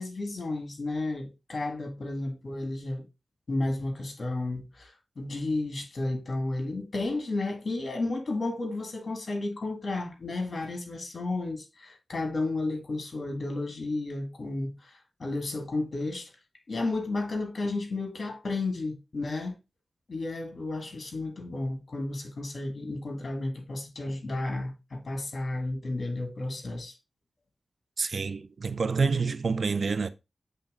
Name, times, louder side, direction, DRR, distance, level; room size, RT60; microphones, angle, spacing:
voice 1, 0.0-3.1 3.5-14.7 15.2-16.3 16.7-19.6 20.1-26.9, left 2 dB, 65° left, 1.9 m, -32 dB
voice 2, 28.0-30.1, right 4 dB, 75° right, 0.5 m, -27 dB
7.6 x 3.5 x 3.7 m
cardioid pair, 45°, 0 cm